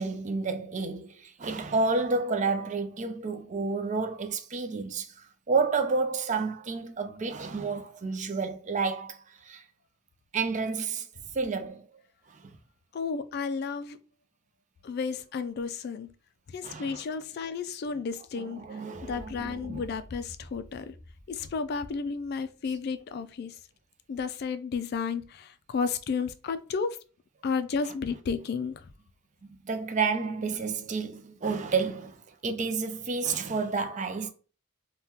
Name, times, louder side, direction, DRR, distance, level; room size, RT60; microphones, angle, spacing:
voice 1, 0.0-9.6 10.3-11.1 11.3-11.9 12.3-12.5 16.6-17.0 18.4-19.8 29.4-34.3, right 4 dB, 35° right, 0.4 m, -30 dB
voice 2, 12.9-14.0 14.8-16.1 16.5-20.9 21.3-23.6 24.1-27.0 27.4-28.9, left 5 dB, 50° left, 0.3 m, -32 dB
sound 1, 18.9-23.3, left 1 dB, 55° right, 0.8 m, -49 dB
3.5 x 2.2 x 2.8 m
head